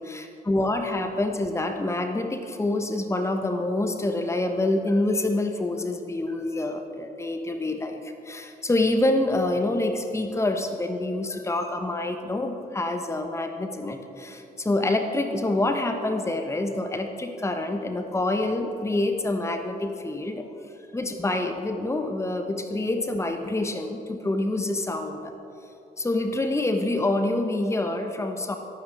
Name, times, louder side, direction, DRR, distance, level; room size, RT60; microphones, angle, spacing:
voice 1, 0.0-20.5 20.9-25.3 26.0-28.6, left 2 dB, 15° left, 6 dB, 1.2 m, -27 dB
22.0 x 12.0 x 3.5 m, 2.9 s
figure-of-eight pair, 40°, 21 cm